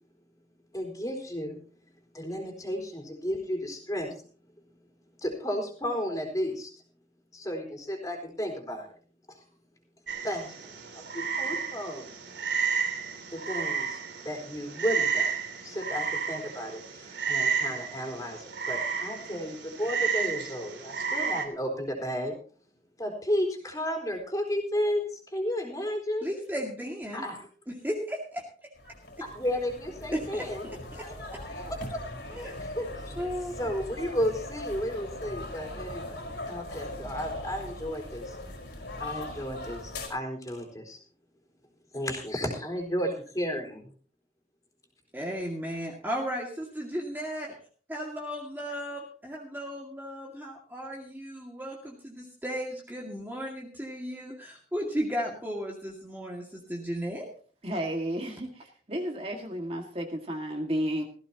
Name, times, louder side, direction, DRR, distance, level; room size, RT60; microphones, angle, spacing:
voice 1, 0.7-1.6 2.1-4.2 5.2-6.7 7.3-8.9 9.3-9.4 10.2-10.7 10.9-12.1 13.3-15.4 15.6-22.3 23.0-26.3 27.1-27.5 29.2-30.7 31.0-33.1 33.6-38.4 39.0-41.0 41.9-43.9, equal, 20° left, 2 dB, 4.1 m, -33 dB
Frog, 10.1-21.4, right 6 dB, 85° right, 3.1 m, -32 dB
voice 2, 26.2-27.2 27.7-28.4 30.1-31.1 32.3-32.6 33.2-33.5 45.1-47.5 47.9-57.3, equal, 10° right, -2 dB, 2.2 m, -35 dB
sound 1, 28.8-40.1, left 1 dB, 75° left, 4.6 m, -40 dB
voice 3, 57.6-61.0, equal, 35° right, 2 dB, 2.1 m, -32 dB
17.5 x 15.5 x 3.0 m, 0.42 s
head